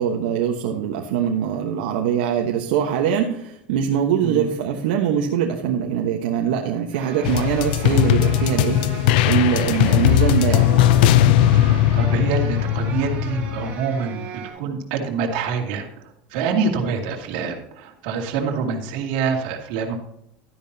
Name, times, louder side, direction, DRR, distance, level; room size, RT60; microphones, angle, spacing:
voice 1, 0.0-10.8, right 8 dB, 85° right, 1 dB, 1.2 m, -23 dB
sound 1, 6.9-14.5, right 4 dB, 30° right, 4.0 m, -38 dB
sound 2, 7.2-13.8, left 11 dB, 80° left, 0.5 m, -18 dB
voice 2, 11.5-14.2 14.6-15.9 16.3-19.9, right 5 dB, 65° right, 2 dB, 2.4 m, -25 dB
12.5 x 10.5 x 2.8 m, 0.76 s
cardioid pair, 160°, 5 cm